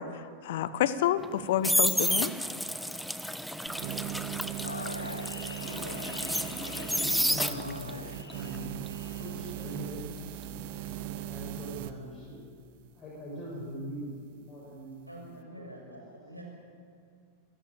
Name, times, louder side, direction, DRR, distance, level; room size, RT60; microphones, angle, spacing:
voice 1, 0.0-2.3, left 11 dB, 55° left, 15 dB, 1.1 m, -29 dB
sound 1, 1.2-8.0 8.3-11.2 11.5-11.8, equal, ahead, 0.8 m, -31 dB
sound 2, 3.7-11.9, right 14 dB, 50° right, 1.1 m, -39 dB
sound 3, 4.6-9.8, left 4 dB, 75° left, 1.3 m, -43 dB
voice 2, 6.8-8.7 9.2-10.0 10.7-12.4 12.9-14.1 14.5-16.0, equal, 25° left, -4 dB, 6.7 m, -42 dB
voice 3, 15.1-16.4, right 1 dB, 90° right, -1 dB, 6.3 m, -47 dB
27.0 x 14.5 x 8.8 m, 2.2 s
figure-of-eight pair, 90°, 0 cm